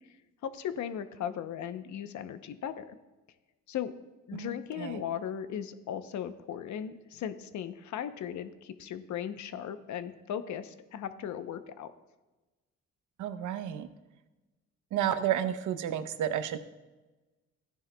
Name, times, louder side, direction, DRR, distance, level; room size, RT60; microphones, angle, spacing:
voice 1, 0.4-3.0 3.7-3.9 4.3-11.9, left 9 dB, 70° left, 11 dB, 0.8 m, -37 dB
voice 2, 4.3-5.0 13.2-13.9 14.9-16.6, right 10 dB, 80° right, 10 dB, 0.8 m, -31 dB
14.5 x 10.0 x 2.2 m, 1.1 s
cardioid pair, 90°, 30 cm